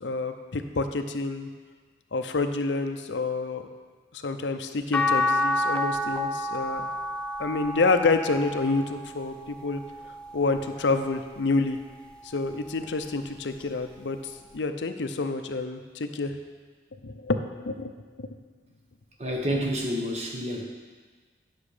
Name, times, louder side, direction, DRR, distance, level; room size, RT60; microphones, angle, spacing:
voice 1, 0.0-1.5 2.1-3.6 4.1-6.8 7.4-9.8 10.3-11.8 12.2-14.2 14.5-16.3 17.0-17.9 18.2-18.3, left 3 dB, 85° left, 8 dB, 0.6 m, -28 dB
sound 1, 4.9-11.2 11.8-13.1 14.6-14.7, left 1 dB, 5° left, 0.4 m, -30 dB
voice 2, 19.2-20.6, equal, 35° right, 0 dB, 1.2 m, -29 dB
9.6 x 6.3 x 5.0 m, 1.5 s
head